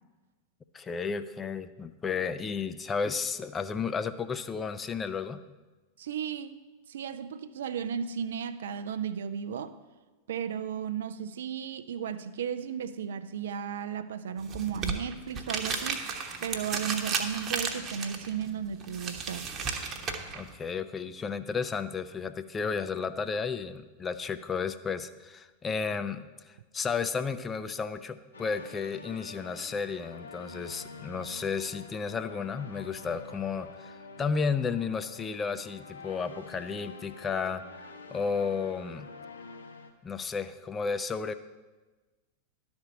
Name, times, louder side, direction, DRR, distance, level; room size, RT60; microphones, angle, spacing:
voice 1, 0.7-5.4 20.3-39.1 40.0-41.3, left 5 dB, 20° left, 11 dB, 0.4 m, -33 dB
voice 2, 6.0-6.6 6.9-9.8 10.3-19.5, right 8 dB, 60° right, 12 dB, 0.4 m, -35 dB
sound 1, 14.4-20.5, right 5 dB, 30° right, 1.0 m, -34 dB
sound 2, 28.3-39.9, left 3 dB, 75° left, 0.8 m, -47 dB
11.5 x 4.4 x 6.9 m, 1.2 s
figure-of-eight pair, 90°, 0 cm